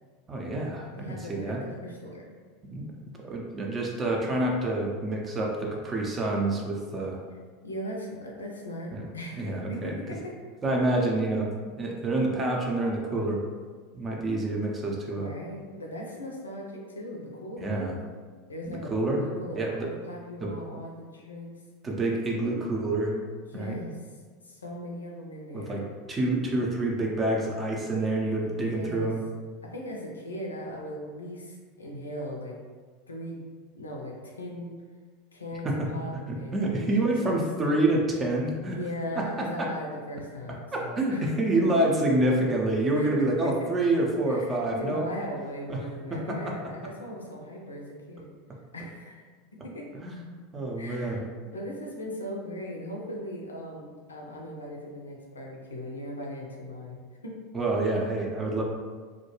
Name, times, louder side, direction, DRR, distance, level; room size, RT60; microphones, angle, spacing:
voice 1, 0.3-1.6 2.7-7.2 8.9-9.0 9.4-9.9 10.6-11.5 11.8-13.4 13.9-15.3 17.6-18.0 18.9-19.2 19.5-19.9 20.4-20.5 21.8-23.2 23.5-23.8 25.5-25.8 26.1-29.2 35.6-35.9 36.3-38.8 39.2-39.7 41.0-45.0 45.7-45.8 46.1-46.4 50.0-50.1 50.5-51.2 57.5-58.6, right 2 dB, 25° right, -1 dB, 0.5 m, -27 dB
voice 2, 0.9-2.3 7.6-10.3 15.1-17.8 18.5-21.5 23.5-24.0 24.4-25.9 28.4-29.1 29.6-32.6 33.1-33.5 33.7-34.8 35.3-35.7 35.9-37.4 38.7-42.0 42.9-43.1 43.4-43.7 44.3-48.3 48.7-49.3 49.6-49.9 50.8-51.3 51.5-57.3, equal, 85° left, -1 dB, 0.4 m, -38 dB
2.3 x 2.2 x 2.9 m, 1.5 s
figure-of-eight pair, 80°, 0 cm